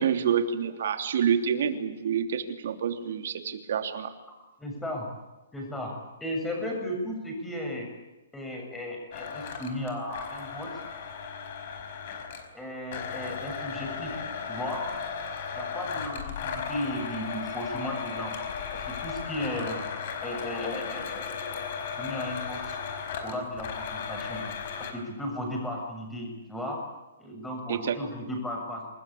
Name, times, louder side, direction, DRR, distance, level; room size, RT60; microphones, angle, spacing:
voice 1, 0.0-4.1 27.7-27.9, right 8 dB, 55° right, 7 dB, 3.3 m, -27 dB
voice 2, 4.6-5.1 5.5-5.9 6.2-7.9 8.3-10.8 12.5-14.8 15.6-18.4 18.7-19.8 20.2-21.7 22.0-22.8 23.2-24.5 24.8-26.8 27.2-28.9, left 1 dB, 5° left, 1 dB, 7.0 m, -35 dB
Domestic sounds home sounds, 9.1-12.5 12.9-24.9, left 6 dB, 40° left, 5.0 m, -36 dB
27.5 x 20.5 x 8.7 m, 1.1 s
hypercardioid pair, 170°, 0 cm